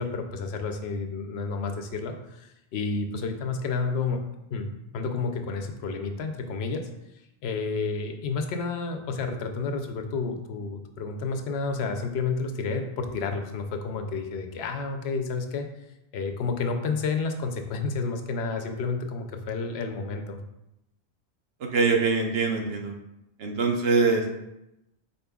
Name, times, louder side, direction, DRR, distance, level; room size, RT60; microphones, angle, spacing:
voice 1, 0.0-4.2 4.5-6.9 7.4-15.7 16.1-20.4, left 4 dB, 75° left, 5 dB, 0.8 m, -30 dB
voice 2, 21.6-22.9 23.4-24.4, right 4 dB, 70° right, 3 dB, 0.9 m, -24 dB
5.2 x 4.3 x 2.3 m, 0.87 s
omnidirectional pair, 1.1 m